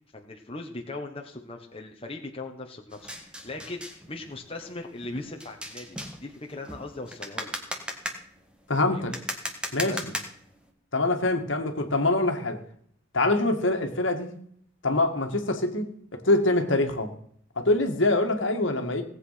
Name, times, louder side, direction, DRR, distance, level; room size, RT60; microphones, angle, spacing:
voice 1, 0.1-7.5 8.9-9.2 9.9-10.1, left 2 dB, 25° left, 1.4 m, -39 dB
sound 1, 2.9-10.7, equal, 5° right, 1.7 m, -38 dB
voice 2, 8.7-9.1 9.7-10.0 10.9-12.6 13.1-14.3 14.8-17.1 17.6-19.0, left 2 dB, 65° left, 2.0 m, -24 dB
18.5 x 8.2 x 5.8 m
head